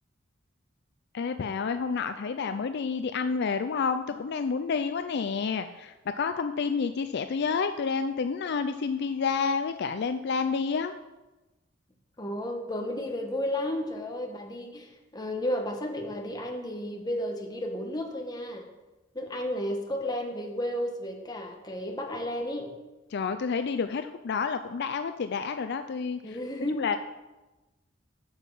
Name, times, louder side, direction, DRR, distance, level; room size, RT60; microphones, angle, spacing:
voice 1, 1.1-10.9 23.1-26.4 26.7-27.0, left 5 dB, 60° left, 9 dB, 0.4 m, -29 dB
voice 2, 12.2-18.7 19.1-22.7 26.2-26.9, left 1 dB, 20° left, 2 dB, 1.3 m, -33 dB
8.6 x 7.3 x 5.5 m, 1.1 s
head